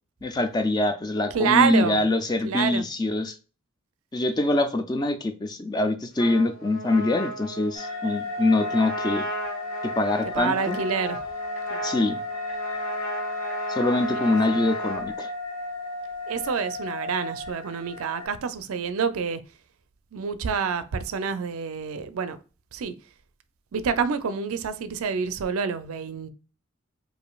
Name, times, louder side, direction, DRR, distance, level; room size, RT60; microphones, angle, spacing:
voice 1, 0.2-3.4 4.1-9.2 9.9-10.8 11.8-12.2 13.7-15.3, left 2 dB, 20° left, 0.3 m, -24 dB
voice 2, 1.3-2.0 2.4-2.8 10.3-11.2 11.7-11.9 14.5-14.7 16.3-19.4 20.1-22.4 22.7-22.9 23.7-26.3, right 6 dB, 80° right, 0.4 m, -27 dB
Trumpet, 6.1-15.0, right 1 dB, 75° left, 1.4 m, -35 dB
sound 1, 7.7-18.3, left 2 dB, 35° left, 1.7 m, -34 dB
4.9 x 2.6 x 2.3 m
head